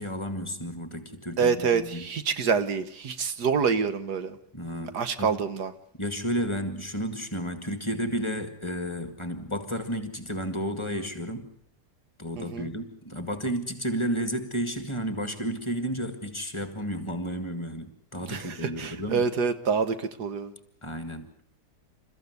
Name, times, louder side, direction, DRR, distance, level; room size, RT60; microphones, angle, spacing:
voice 1, 0.0-2.1 4.5-5.4 6.0-11.5 12.2-19.2 20.8-21.3, equal, 15° left, 8 dB, 1.9 m, -32 dB
voice 2, 1.4-4.4 4.9-5.7 12.4-12.7 18.2-20.5, right 6 dB, 75° right, 11 dB, 1.8 m, -27 dB
28.5 x 14.5 x 8.1 m, 0.68 s
omnidirectional pair, 1.8 m